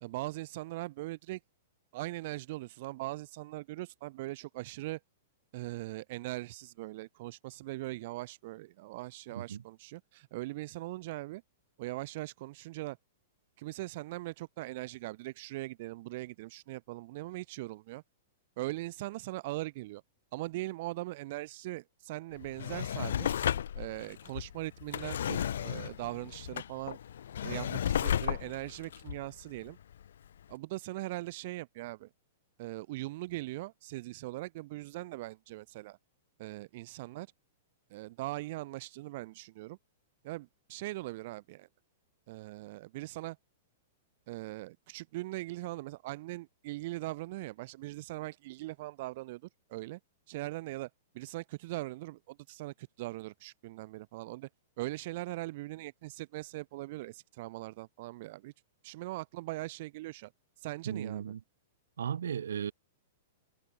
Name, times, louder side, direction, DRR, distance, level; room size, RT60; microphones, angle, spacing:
voice 1, 0.0-1.4 1.9-5.0 5.5-11.4 11.8-13.0 13.6-18.0 18.6-20.0 20.3-23.3 23.7-27.0 27.4-29.8 30.5-32.1 32.6-36.0 36.4-37.3 37.9-39.8 40.2-41.7 42.3-43.4 44.3-50.0 50.3-50.9 51.1-54.5 54.8-58.5 58.8-60.3 60.6-61.3, right 19 dB, 55° right, 1.1 m, -40 dB
Drawer open or close, 22.4-30.1 30.5-30.6, left 9 dB, 75° left, 0.6 m, -34 dB
voice 2, 60.9-61.4 62.0-62.7, right 8 dB, 80° right, 2.1 m, -35 dB
hypercardioid pair, 125°, 0 cm